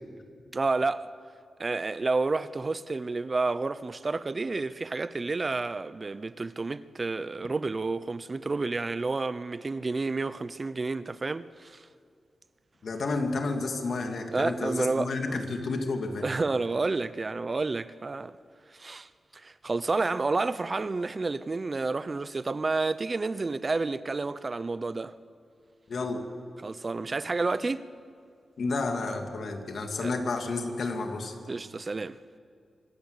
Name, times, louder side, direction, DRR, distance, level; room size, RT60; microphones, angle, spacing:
voice 1, 0.5-1.1 1.6-11.8 14.3-15.4 16.2-18.3 18.7-25.1 26.6-27.8 30.0-30.1 31.5-32.2, right 3 dB, 35° right, 0.5 m, -30 dB
voice 2, 12.8-16.3 25.9-26.3 28.6-31.3, left 3 dB, 65° left, 2.3 m, -31 dB
24.5 x 13.0 x 8.1 m
wide cardioid pair, 95°, 0 cm